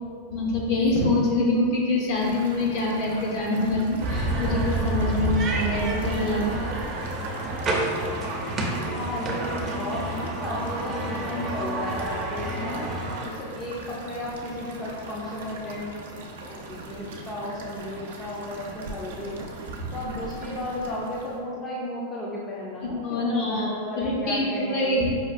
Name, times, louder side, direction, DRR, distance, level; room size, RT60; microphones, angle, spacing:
voice 1, 0.3-6.5 22.8-25.1, left 2 dB, 55° left, -3 dB, 0.8 m, -25 dB
sound 1, 2.1-21.4, right 2 dB, 75° right, 0.5 m, -41 dB
sound 2, 4.0-13.3, right 2 dB, 25° right, 0.6 m, -29 dB
voice 2, 8.9-12.9 13.2-16.0 16.5-19.5 19.9-25.0, left 1 dB, 20° left, -6 dB, 0.5 m, -34 dB
5.0 x 2.3 x 2.5 m, 2.1 s
hypercardioid pair, 120°, 0 cm